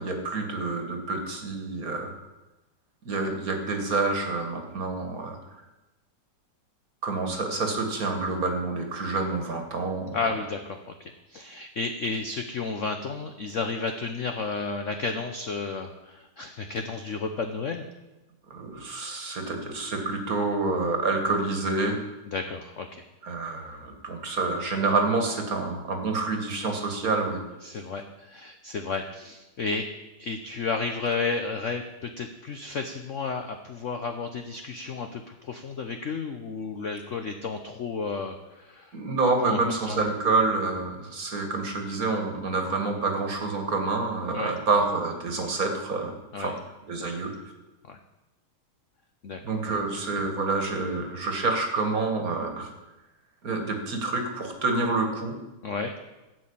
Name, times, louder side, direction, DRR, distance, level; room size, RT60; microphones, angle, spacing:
voice 1, 0.0-2.3 3.0-5.4 7.0-10.3 18.5-22.0 23.2-27.4 27.7-27.8 38.9-46.5 46.9-47.5 49.4-52.7 53.4-55.4, right 3 dB, 45° right, 4 dB, 1.8 m, -28 dB
voice 2, 10.1-17.9 22.3-23.1 27.6-29.9 30.2-39.0 39.4-40.0 44.3-44.5 46.3-46.5 46.9-47.1 47.9-48.0 49.2-49.4 55.6-55.9, left 4 dB, 70° left, 6 dB, 0.7 m, -32 dB
12.5 x 5.6 x 8.5 m, 1.1 s
omnidirectional pair, 2.3 m